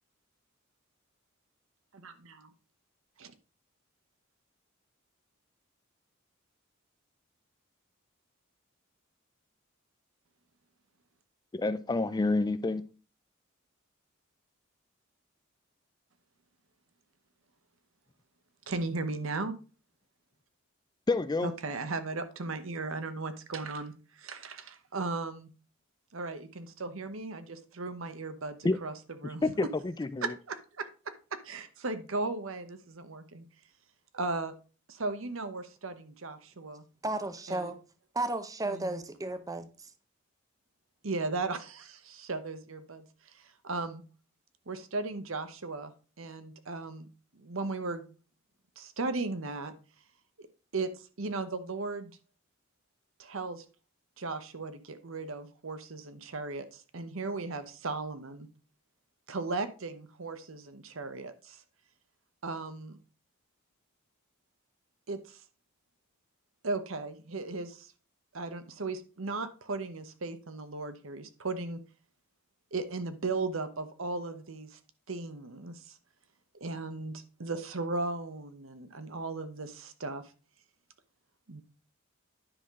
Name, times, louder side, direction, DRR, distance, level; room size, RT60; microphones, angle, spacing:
voice 1, 1.9-2.5 3.2-3.3 18.7-19.5 21.4-25.5 26.1-28.9 29.2-29.5 30.2-33.4 34.1-34.5 34.9-36.8 37.5-37.7 38.6-39.0 41.0-44.0 44.7-45.9 46.2-47.1 47.3-48.0 48.8-49.7 50.4-50.5 50.7-52.2 53.2-53.6 54.2-58.5 59.3-61.6 62.4-63.0 65.1-65.4 66.6-67.9 68.3-71.8 72.7-74.8 75.1-76.0 76.6-80.2 81.5-81.6, right 3 dB, 70° right, 1.0 m, -36 dB
voice 2, 11.5-12.8 21.1-21.5 28.6-28.8 29.4-30.3, left 3 dB, 20° left, 0.4 m, -28 dB
voice 3, 37.0-37.8 38.1-39.7, right 2 dB, 15° right, 0.6 m, -33 dB
9.9 x 5.7 x 3.7 m
head